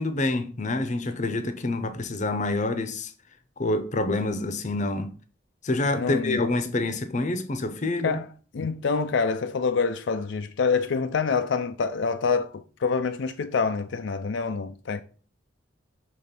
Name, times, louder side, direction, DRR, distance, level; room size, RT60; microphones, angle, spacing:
voice 1, 0.0-3.1 3.6-5.1 5.6-8.2, left 2 dB, 40° left, 0.7 m, -27 dB
voice 2, 6.0-6.4 8.0-8.3 8.5-15.0, left 5 dB, 75° left, 0.4 m, -26 dB
6.1 x 3.1 x 5.2 m
head